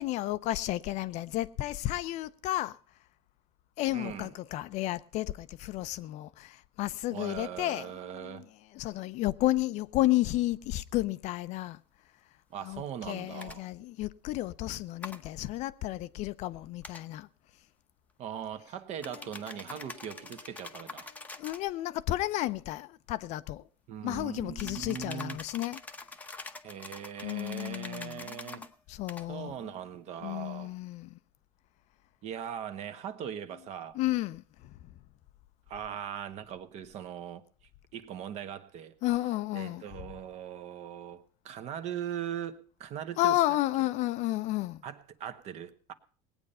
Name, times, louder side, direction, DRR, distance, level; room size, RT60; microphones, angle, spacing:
voice 1, 0.0-2.8 3.8-8.5 8.7-11.8 12.6-17.3 19.1-19.2 21.1-23.6 24.0-25.8 27.2-29.5 30.2-31.2 33.9-34.7 39.0-39.8 43.2-44.8, left 16 dB, 50° left, 0.6 m, -32 dB
voice 2, 3.9-4.3 7.1-8.5 12.5-13.7 18.2-21.1 23.9-25.4 26.6-28.7 29.3-30.7 32.2-34.0 35.7-37.4 37.9-38.9 39.5-43.4 44.8-45.9, right 9 dB, 45° right, 1.3 m, -40 dB
sound 1, 13.4-13.6 15.0-15.2 16.8-17.0 19.0-21.7 24.6-28.7 29.1-29.3, left 3 dB, 10° left, 0.8 m, -45 dB
19.0 x 8.9 x 5.5 m
supercardioid pair, 125°, 15 cm